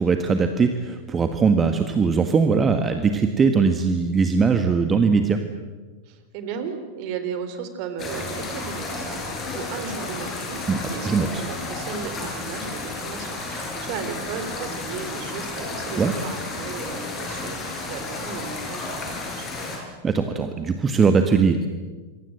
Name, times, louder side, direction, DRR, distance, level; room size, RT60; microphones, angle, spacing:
voice 1, 0.0-5.4 10.7-10.8 11.0-11.4 16.0-16.1 20.0-21.7, right 5 dB, 20° right, 7 dB, 1.6 m, -20 dB
voice 2, 6.1-11.1 11.4-19.5, right 6 dB, 45° right, 9 dB, 3.7 m, -35 dB
sound 1, 8.0-19.8, left 3 dB, 25° left, 7.9 m, -32 dB
27.0 x 23.5 x 8.0 m, 1.3 s
figure-of-eight pair, 90°, 0 cm